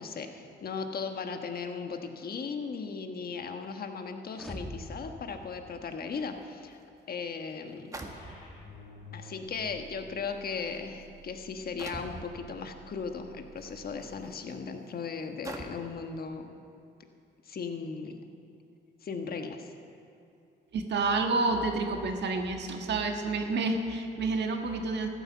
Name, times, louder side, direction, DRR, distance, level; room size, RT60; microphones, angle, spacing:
voice 1, 0.0-6.8 7.1-8.0 9.1-16.6 17.4-18.3 19.0-19.7, left 5 dB, 50° left, 5 dB, 1.3 m, -37 dB
sound 1, 4.3-6.4, equal, ahead, 1.3 m, -44 dB
sound 2, 6.8-6.9 7.9-8.7 9.6-9.7 10.5-10.8 11.8-12.3 13.6-13.7 14.3-14.4 15.4-16.0, right 2 dB, 15° right, 1.5 m, -42 dB
sound 3, 8.1-14.1, right 1 dB, 90° left, 3.1 m, -52 dB
voice 2, 20.7-25.1, right 3 dB, 60° right, 4 dB, 1.5 m, -29 dB
14.0 x 10.0 x 7.3 m, 2.6 s
cardioid pair, 90°, 20 cm